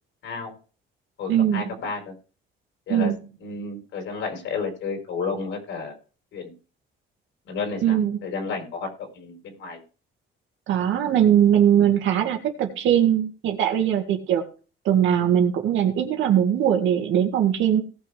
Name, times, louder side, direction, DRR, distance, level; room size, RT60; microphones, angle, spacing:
voice 1, 0.2-0.6 1.2-2.1 2.9-3.1 3.4-6.0 6.3-6.5 7.4-9.8, left 4 dB, 65° left, 3 dB, 4.5 m, -32 dB
voice 2, 1.3-1.6 2.9-3.2 7.8-8.2 10.7-14.4 14.8-17.8, right 10 dB, 65° right, 4 dB, 2.1 m, -20 dB
18.0 x 6.4 x 3.5 m, 0.37 s
cardioid pair, 175°, 21 cm